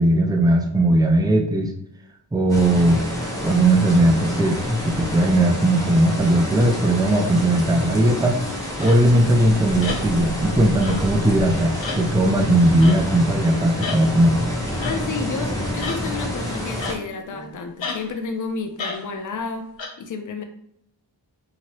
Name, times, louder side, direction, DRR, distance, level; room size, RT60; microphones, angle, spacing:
voice 1, 0.0-1.7 2.3-3.0 3.4-8.4 8.8-14.4, right 1 dB, 10° right, 3 dB, 0.4 m, -18 dB
sound 1, 2.5-16.9, left 1 dB, 5° left, 0.8 m, -28 dB
sound 2, 6.7-6.9 7.6-7.8 8.5-8.6 9.1-9.4 10.0-10.3 11.0-11.1 11.6-11.8 12.5-12.8 14.0-14.3 14.9-15.2 16.4-16.6 17.0-17.1 17.3-17.5, right 2 dB, 85° right, 0.8 m, -40 dB
sound 3, 8.8-9.0 9.8-10.1 10.8-11.1 11.8-12.0 12.8-13.1 13.8-14.0 14.8-15.0 15.8-16.1 16.8-17.2 17.8-18.0 18.8-19.0 19.8-19.9, left 3 dB, 80° left, 0.8 m, -31 dB
voice 2, 14.9-19.7 20.0-20.4, left 4 dB, 45° left, 5 dB, 0.5 m, -31 dB
2.9 x 2.8 x 2.9 m, 0.75 s
wide cardioid pair, 75°, 45 cm